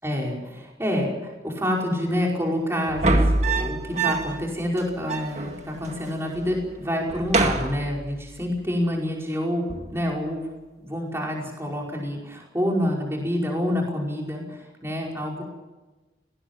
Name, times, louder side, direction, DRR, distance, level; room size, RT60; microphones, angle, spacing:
voice 1, 0.0-10.4 10.8-15.4, equal, 15° right, -1 dB, 5.2 m, -27 dB
sound 1, 2.9-4.5 4.8-4.9 5.0-6.0 6.3-6.7 7.0-8.4 9.7-10.1, right 2 dB, 40° right, 1.9 m, -25 dB
19.5 x 19.0 x 9.0 m, 1.2 s
head